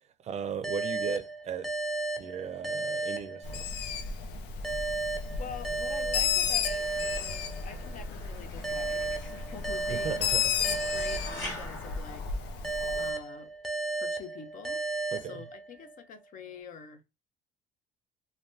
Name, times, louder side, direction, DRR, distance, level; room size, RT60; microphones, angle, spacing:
voice 1, 0.2-1.7 2.2-3.7 9.9-10.5 15.1-15.5, right 6 dB, 40° right, 0.5 m, -36 dB
sound 1, 0.6-4.0 4.6-8.0 8.6-12.0 12.6-16.0, right 3 dB, ahead, 0.6 m, -34 dB
Bird, 3.4-13.1, left 7 dB, 85° left, 0.5 m, -33 dB
voice 2, 5.4-12.2 13.0-13.5 14.0-17.0, left 6 dB, 50° left, 0.6 m, -46 dB
sound 2, 6.7-13.0, left 1 dB, 20° left, 1.7 m, -46 dB
3.2 x 2.2 x 2.7 m
cardioid pair, 110°, 17 cm